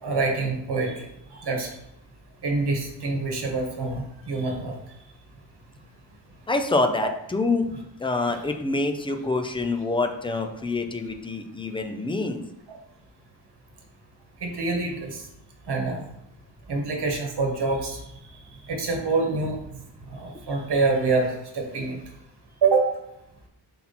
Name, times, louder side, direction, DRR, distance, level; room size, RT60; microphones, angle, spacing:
voice 1, 0.0-1.7 2.4-4.7 8.3-8.5 12.7-12.8 14.4-15.2 15.7-16.0 16.7-18.0 18.7-19.6 20.1-22.0 22.6-22.8, right 3 dB, 60° right, 1 dB, 1.3 m, -26 dB
voice 2, 6.5-7.7 8.0-12.4, left 3 dB, 10° left, 5 dB, 0.4 m, -26 dB
5.6 x 4.2 x 4.2 m, 0.82 s
wide cardioid pair, 170°, 45 cm